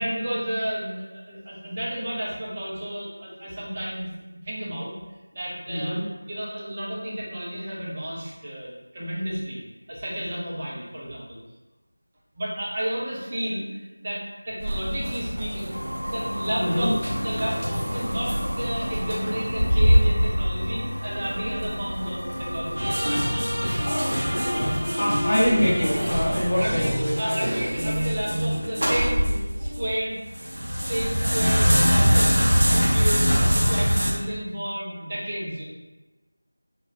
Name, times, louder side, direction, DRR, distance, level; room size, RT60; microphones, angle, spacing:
voice 1, 0.0-4.1 4.4-4.9 5.3-6.0 6.3-9.6 9.9-11.4 12.4-15.8 16.1-23.6 26.2-30.2 30.6-32.4 32.7-35.7, equal, 25° right, -6 dB, 0.6 m, -32 dB
voice 2, 5.7-6.0 16.6-16.9 24.0-24.4 24.7-27.4, equal, 35° left, -8 dB, 0.8 m, -25 dB
sound 1, 14.6-29.9 30.3-34.1, equal, 75° right, 0.6 m, -24 dB
sound 2, 15.7-27.2, left 1 dB, 80° left, 0.4 m, -36 dB
3.1 x 2.2 x 2.5 m, 1.1 s
figure-of-eight pair, 170°, 0 cm